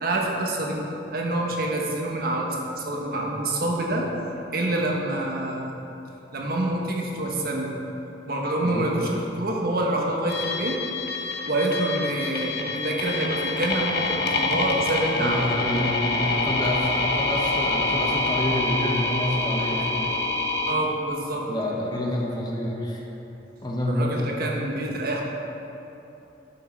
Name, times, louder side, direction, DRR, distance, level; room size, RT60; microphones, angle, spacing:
voice 1, 0.0-0.8 1.1-4.1 4.5-5.8 6.3-7.8 8.3-10.7 11.5-15.9 20.7-21.5 23.9-25.2, right 1 dB, 55° right, -1 dB, 1.2 m, -27 dB
voice 2, 8.6-9.2 15.2-20.1 21.5-23.0 23.6-24.2, left 1 dB, 25° left, -2 dB, 1.1 m, -28 dB
sound 1, 10.3-20.8, left 3 dB, 60° left, 1.0 m, -26 dB
10.5 x 6.5 x 4.5 m, 3.0 s
head